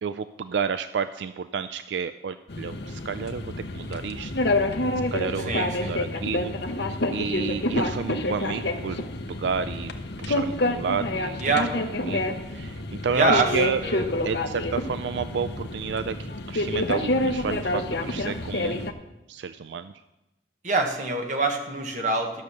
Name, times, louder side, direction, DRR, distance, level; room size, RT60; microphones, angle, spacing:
voice 1, 0.0-3.4 3.7-4.3 5.1-9.0 9.3-9.9 10.2-11.5 12.0-13.8 14.2-18.9 19.3-19.9, right 6 dB, 80° right, 12 dB, 0.4 m, -31 dB
sound 1, 2.5-18.9, left 2 dB, 70° left, 0.9 m, -28 dB
voice 2, 5.5-5.9 11.4-11.7 13.1-13.5 13.8-14.1 20.6-22.3, right 3 dB, 45° right, 3 dB, 1.5 m, -24 dB
12.0 x 6.6 x 6.9 m, 0.97 s
head